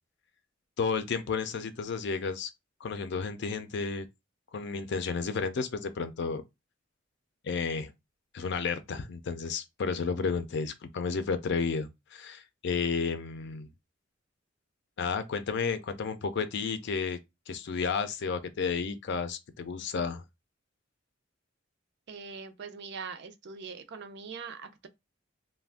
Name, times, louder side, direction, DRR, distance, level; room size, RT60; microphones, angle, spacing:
voice 1, 0.8-2.5 2.8-4.1 4.5-6.4 7.4-7.9 8.3-13.7 15.0-17.2 17.5-20.2, left 5 dB, 60° left, 0.4 m, -32 dB
voice 2, 22.1-24.9, right 5 dB, 60° right, 0.5 m, -42 dB
2.4 x 2.2 x 3.4 m
head